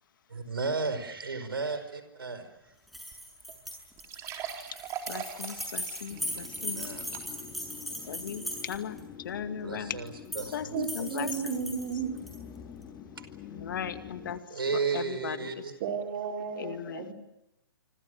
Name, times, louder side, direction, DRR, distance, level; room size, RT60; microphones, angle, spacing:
voice 1, 0.3-2.5 6.6-7.0 9.6-10.1 10.3-10.7 13.2-13.3 14.5-15.7, right 4 dB, 75° right, 10 dB, 5.0 m, -33 dB
sound 1, 2.9-9.0 10.1-10.6 10.8-12.4, equal, ahead, 7.6 m, -38 dB
sound 2, 3.1-3.2 3.5-3.6 4.0-7.6 8.0-8.1 8.7-8.8, right 8 dB, 25° right, 3.7 m, -41 dB
voice 2, 5.1-6.9 8.1-10.0 10.5-11.8 13.5-15.9 16.5-17.1, left 8 dB, 60° left, 10 dB, 2.2 m, -38 dB
sound 3, 6.1-14.4, left 8 dB, 20° left, 2.5 m, -47 dB
voice 3, 10.7-12.1 15.8-17.1, right 7 dB, 40° right, 3 dB, 4.4 m, -34 dB
28.0 x 25.5 x 6.5 m, 0.88 s
figure-of-eight pair, 125°, 12 cm